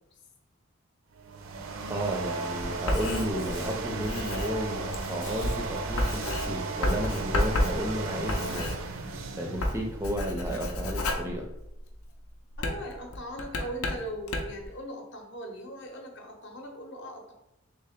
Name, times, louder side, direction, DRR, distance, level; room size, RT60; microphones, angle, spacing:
sound 1, 1.1-10.3, right 3 dB, 70° right, 0.5 m, -35 dB
voice 1, 1.9-9.1 9.3-11.5, equal, 10° right, 1 dB, 0.4 m, -33 dB
Writing, 2.6-9.2 9.5-12.0 12.5-14.7, left 1 dB, 90° left, 0.6 m, -31 dB
voice 2, 12.6-17.3, right 1 dB, 55° left, 2 dB, 0.7 m, -40 dB
3.3 x 3.1 x 3.5 m, 0.85 s
head